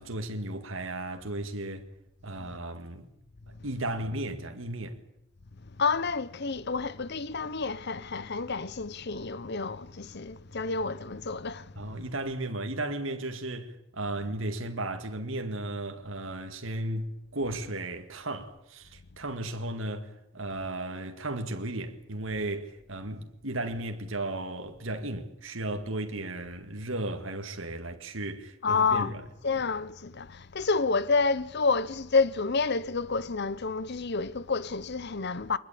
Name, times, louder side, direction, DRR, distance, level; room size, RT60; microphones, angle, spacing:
voice 1, 0.0-1.8 2.2-3.1 3.6-5.0 11.8-29.2 29.6-29.7, right 1 dB, 70° right, 2.0 m, -35 dB
voice 2, 5.8-11.7 28.6-29.2 29.4-35.6, left 4 dB, 55° left, 0.9 m, -29 dB
23.5 x 20.5 x 8.6 m
head